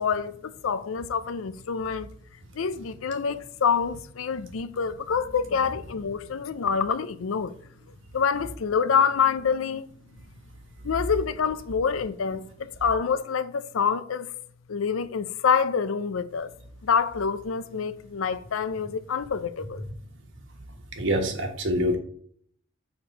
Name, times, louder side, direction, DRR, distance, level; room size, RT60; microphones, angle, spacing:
voice 1, 0.0-2.1 2.6-7.5 8.1-9.9 10.8-14.3 14.7-16.5 16.8-19.8, left 6 dB, 75° left, 0.5 m, -26 dB
voice 2, 20.9-22.0, equal, 60° right, 1.4 m, -25 dB
6.8 x 4.3 x 5.3 m
head